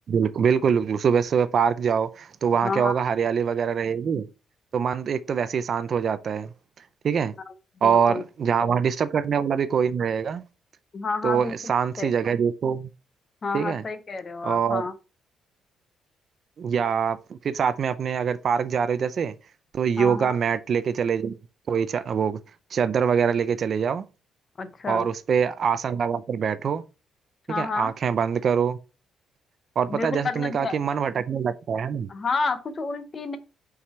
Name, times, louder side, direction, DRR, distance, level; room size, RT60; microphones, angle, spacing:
voice 1, 0.1-4.3 4.7-6.5 7.0-7.3 7.8-10.4 11.2-12.9 13.5-13.8 14.4-14.8 16.6-19.3 19.7-21.4 21.7-22.4 22.7-24.0 24.9-26.8 27.6-28.8 29.8-32.1, right 7 dB, 40° right, 0.5 m, -24 dB
voice 2, 2.6-2.9 7.8-8.2 8.6-8.8 10.9-11.7 12.0-12.1 13.4-14.9 20.0-20.4 24.6-25.1 27.5-27.9 29.9-30.8 32.1-33.4, left 4 dB, 30° left, 0.8 m, -30 dB
5.9 x 4.8 x 4.3 m
cardioid pair, 160°, 0 cm